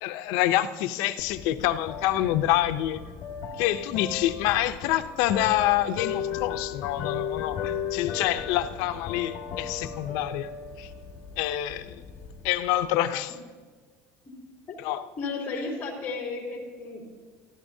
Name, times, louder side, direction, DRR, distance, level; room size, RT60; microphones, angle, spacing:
voice 1, 0.0-3.0 3.6-10.9 11.4-12.0 12.4-13.4 14.8-15.1, left 13 dB, 70° left, 0.6 m, -27 dB
sound 1, 1.2-12.8, left 8 dB, 45° left, 1.4 m, -36 dB
voice 2, 15.2-17.0, left 4 dB, 30° left, 3.3 m, -33 dB
24.0 x 15.0 x 2.7 m
cardioid pair, 175°, 6 cm